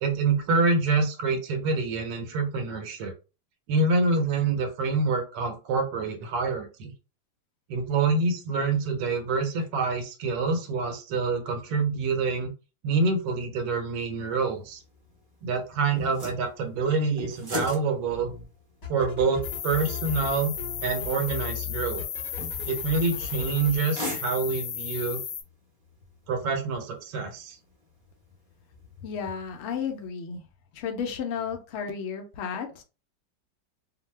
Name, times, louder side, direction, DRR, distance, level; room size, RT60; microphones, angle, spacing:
voice 1, 0.0-3.1 3.7-6.9 7.7-12.5 12.8-14.8 15.4-18.3 18.9-20.5 20.8-22.0 22.7-25.2 26.3-27.6, right 4 dB, 70° right, 4 dB, 1.2 m, -26 dB
sound 1, 14.3-30.1, left 1 dB, 30° right, 0.7 m, -43 dB
sound 2, 18.1-18.4 18.8-23.8, left 7 dB, 35° left, 0.7 m, -38 dB
sound 3, 19.4-25.4, left 8 dB, 75° left, 1.1 m, -35 dB
voice 2, 29.0-30.4 30.7-32.8, left 6 dB, 90° left, 4 dB, 0.6 m, -33 dB
2.7 x 2.1 x 3.1 m, 0.32 s
omnidirectional pair, 1.8 m